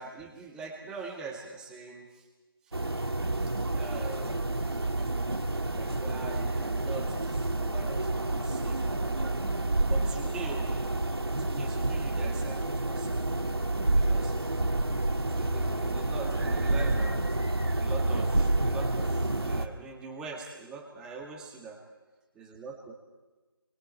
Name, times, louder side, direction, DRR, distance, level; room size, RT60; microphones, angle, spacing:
voice 1, 0.0-2.3 2.6-2.7 3.3-4.8 5.3-9.4 9.9-10.8 11.4-13.2 13.9-14.8 15.1-17.2 17.8-21.8 22.4-22.9, right 4 dB, 5° right, 1 dB, 1.8 m, -43 dB
sound 1, 2.7-19.7, right 2 dB, 85° right, 2.0 m, -29 dB
29.5 x 24.0 x 4.4 m, 1.2 s
figure-of-eight pair, 160°, 13 cm